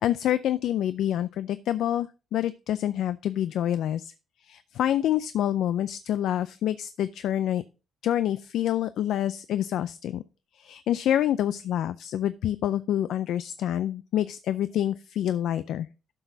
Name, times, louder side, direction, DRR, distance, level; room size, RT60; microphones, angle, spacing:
voice 1, 0.0-4.1 4.4-7.6 8.0-10.2 10.5-15.9, left 11 dB, 80° left, 14 dB, 0.3 m, -27 dB
11.5 x 6.1 x 2.7 m, 0.31 s
cardioid pair, 90°, 0 cm